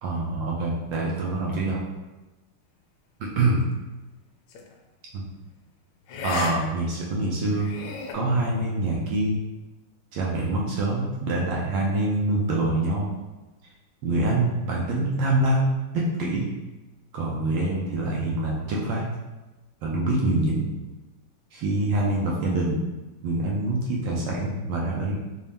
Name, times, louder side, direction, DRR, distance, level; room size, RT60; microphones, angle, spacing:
voice 1, 0.0-1.8 3.2-3.6 5.1-5.2 6.2-7.8 8.1-9.4 10.1-13.1 14.0-16.5 17.1-19.1 19.8-20.6 21.5-22.8 23.2-25.1, right 2 dB, 70° right, -3 dB, 1.2 m, -25 dB
sound 1, 4.5-4.7 6.1-6.5 6.9-7.0 7.5-8.1, left 4 dB, 75° left, 1.4 m, -33 dB
4.2 x 2.4 x 3.4 m, 1.1 s
omnidirectional pair, 2.4 m